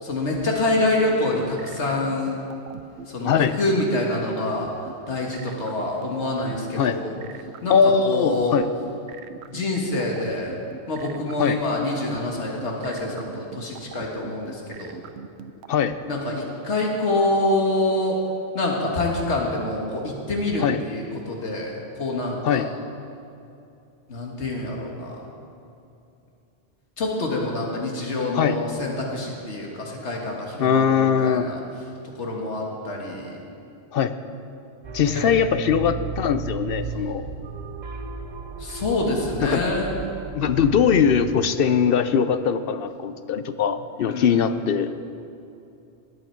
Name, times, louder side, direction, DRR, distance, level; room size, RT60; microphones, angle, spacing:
voice 1, 0.0-2.4 3.1-4.7 5.1-7.2 7.6-7.8 8.0-8.6 9.5-10.5 10.9-15.0 16.1-18.2 18.5-22.7 24.1-25.2 27.0-31.6 32.2-33.4 35.1-35.3 38.6-39.9 44.1-44.4, left 2 dB, 85° left, -1 dB, 1.8 m, -26 dB
sound 1, 1.1-16.0, right 7 dB, 75° right, 0.9 m, -40 dB
voice 2, 3.2-3.5 6.8-7.0 7.7-8.7 11.4-11.6 15.7-15.9 20.6-20.8 22.4-22.7 28.3-28.6 30.6-31.5 33.9-34.1 34.9-37.3 39.4-39.6 40.3-44.9, left 7 dB, 65° left, 11 dB, 0.7 m, -21 dB
sound 2, 34.8-41.3, right 5 dB, 45° right, 0.8 m, -34 dB
19.0 x 8.6 x 4.5 m, 2.7 s
omnidirectional pair, 1.1 m